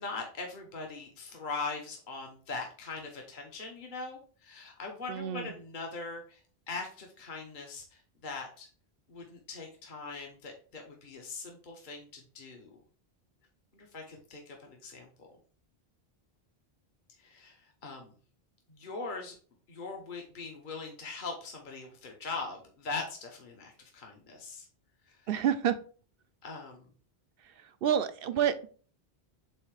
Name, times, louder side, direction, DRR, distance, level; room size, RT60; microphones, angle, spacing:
voice 1, 0.0-6.4 6.7-8.7 9.1-12.8 13.7-15.3 17.2-18.1 18.7-19.4 19.7-24.7 25.1-25.3 26.4-26.9, left 4 dB, 50° left, 1 dB, 1.2 m, -41 dB
voice 2, 5.1-5.5 25.3-25.8 27.8-28.7, right 9 dB, 65° right, 11 dB, 0.8 m, -28 dB
7.7 x 2.8 x 4.7 m, 0.41 s
omnidirectional pair, 1.1 m